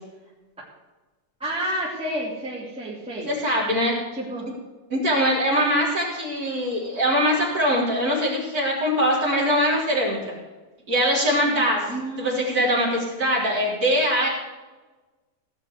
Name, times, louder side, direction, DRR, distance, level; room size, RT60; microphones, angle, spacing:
voice 1, 1.4-3.3 4.1-4.5 11.9-12.4, right 1 dB, ahead, -5 dB, 2.4 m, -30 dB
voice 2, 3.3-4.0 4.9-10.4 10.9-11.8 12.2-14.3, equal, 25° right, -4 dB, 3.8 m, -22 dB
17.0 x 6.0 x 8.1 m, 1.2 s
omnidirectional pair, 3.7 m